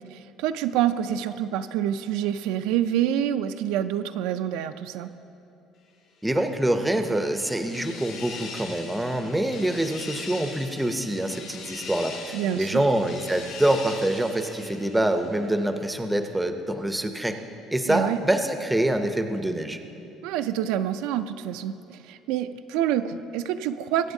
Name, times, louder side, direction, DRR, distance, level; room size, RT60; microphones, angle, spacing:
voice 1, 0.1-5.1 12.3-12.8 17.9-18.2 20.2-24.1, right 10 dB, 85° right, 10 dB, 0.3 m, -27 dB
voice 2, 6.2-17.4 17.7-19.8, right 1 dB, 5° right, 6 dB, 0.5 m, -25 dB
sound 1, 6.5-15.6, left 4 dB, 60° left, 2.4 m, -41 dB
22.0 x 7.9 x 2.7 m, 2.7 s
cardioid pair, 165°, 0 cm